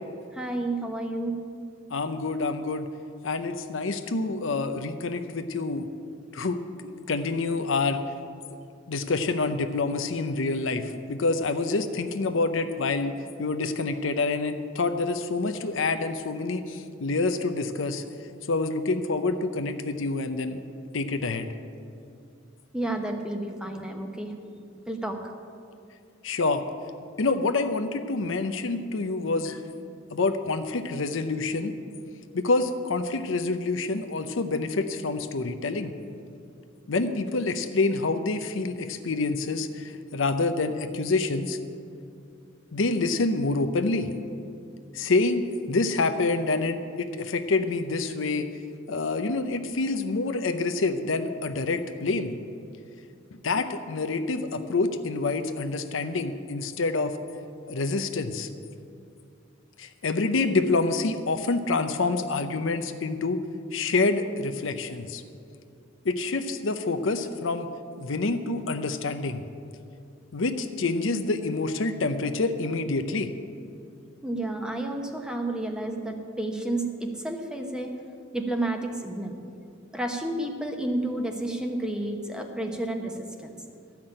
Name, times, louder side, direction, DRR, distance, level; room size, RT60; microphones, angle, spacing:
voice 1, 0.3-1.4 5.4-5.5 22.7-24.3 24.9-25.3 74.2-77.9 78.3-79.4 79.9-83.6, right 1 dB, 5° right, 3 dB, 0.9 m, -31 dB
voice 2, 1.9-2.9 3.2-5.9 6.3-8.0 8.9-13.1 13.4-18.0 18.5-20.6 20.9-21.5 26.2-26.6 27.2-29.6 30.1-31.7 32.3-35.9 36.9-41.6 42.7-44.1 44.9-45.4 45.7-48.5 48.9-52.3 53.4-57.1 57.7-58.5 59.8-63.4 63.7-65.2 66.0-67.7 68.0-69.4 70.3-73.3, left 3 dB, 70° left, 8 dB, 0.7 m, -27 dB
13.0 x 5.9 x 8.8 m, 2.4 s
head